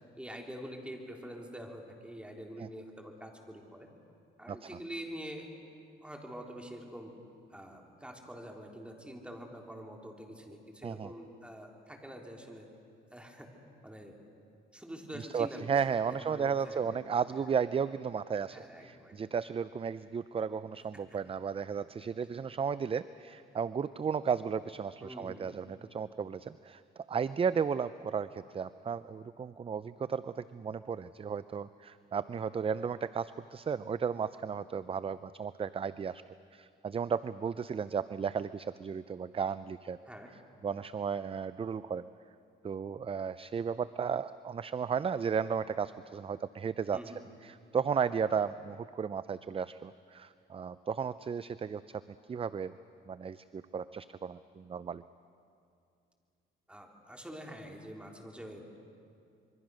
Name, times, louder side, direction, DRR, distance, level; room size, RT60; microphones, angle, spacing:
voice 1, 0.2-3.9 4.4-5.5 6.0-7.1 7.5-12.7 13.1-13.5 13.8-14.2 14.7-15.7 16.1-17.0 18.5-19.2 22.0-22.1 25.0-25.6 40.1-40.3 46.9-47.2 56.7-58.7, equal, 5° right, 1 dB, 3.5 m, -46 dB
voice 2, 15.2-36.2 36.5-40.0 40.6-42.1 42.6-47.0 47.4-51.8 52.3-52.7 53.1-55.0, right 6 dB, 30° right, 15 dB, 0.5 m, -34 dB
26.0 x 23.0 x 6.3 m, 2.5 s
cardioid pair, 90°, 20 cm